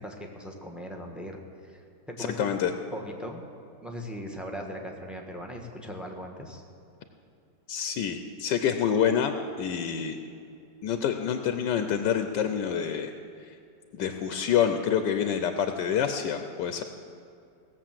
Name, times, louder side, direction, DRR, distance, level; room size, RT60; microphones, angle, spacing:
voice 1, 0.0-2.5 2.9-3.4 3.8-6.6, equal, ahead, 2 dB, 1.0 m, -39 dB
voice 2, 2.2-2.7 7.7-10.2 10.8-13.1 13.9-16.8, left 8 dB, 80° left, 7 dB, 1.3 m, -27 dB
17.5 x 7.4 x 7.5 m, 2.5 s
omnidirectional pair, 1.9 m